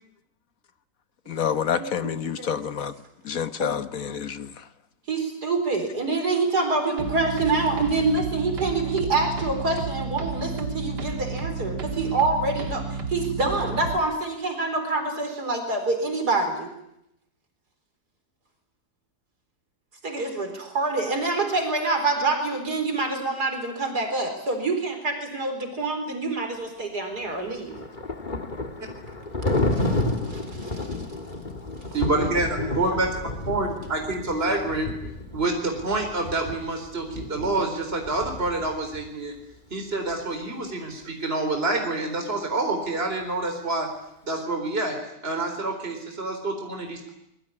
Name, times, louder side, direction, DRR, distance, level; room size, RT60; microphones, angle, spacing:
voice 1, 1.3-2.9 3.2-4.7 5.9-6.0, left 8 dB, 55° left, 1.6 m, -28 dB
voice 2, 5.1-16.7 20.0-27.8 29.4-30.9, right 3 dB, 65° right, 4.8 m, -26 dB
sound 1, 7.0-14.0, right 4 dB, 90° right, 2.2 m, -32 dB
Thunder, 27.3-39.1, left 2 dB, 30° left, 2.1 m, -31 dB
voice 3, 31.9-33.1 33.5-34.9 35.3-39.3 39.7-43.9 44.2-45.0 45.2-47.1, right 2 dB, 35° right, 4.4 m, -27 dB
25.5 x 21.5 x 9.8 m
omnidirectional pair, 1.8 m